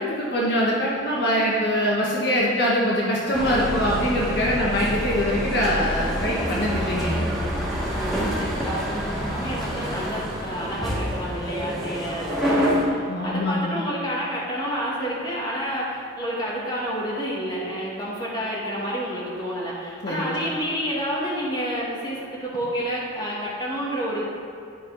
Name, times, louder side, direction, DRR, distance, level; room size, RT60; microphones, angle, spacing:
voice 1, 0.0-7.3 13.1-13.8 20.0-20.4, equal, 55° left, -5 dB, 1.3 m, -23 dB
sound 1, 3.3-12.8, equal, ahead, 2.3 m, -27 dB
voice 2, 7.9-24.2, equal, 20° left, -6 dB, 1.9 m, -29 dB
11.5 x 5.6 x 4.0 m, 2.6 s
head